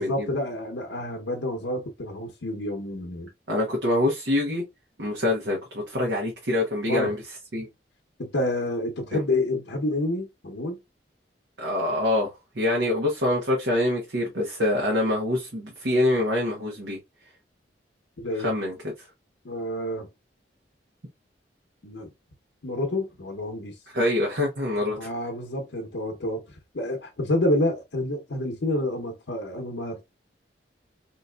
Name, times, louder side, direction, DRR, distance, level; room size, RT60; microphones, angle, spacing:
voice 1, 0.0-3.3 6.9-7.1 8.2-10.8 18.2-18.5 19.4-20.1 21.8-22.1 22.6-23.7 25.0-26.4 26.7-30.0, left 1 dB, 80° left, 0.8 m, -28 dB
voice 2, 3.5-4.6 5.0-7.2 7.5-7.7 9.1-9.2 11.6-17.0 18.4-19.1 23.9-25.1, left 1 dB, 80° right, 1.0 m, -25 dB
3.9 x 2.9 x 2.3 m
head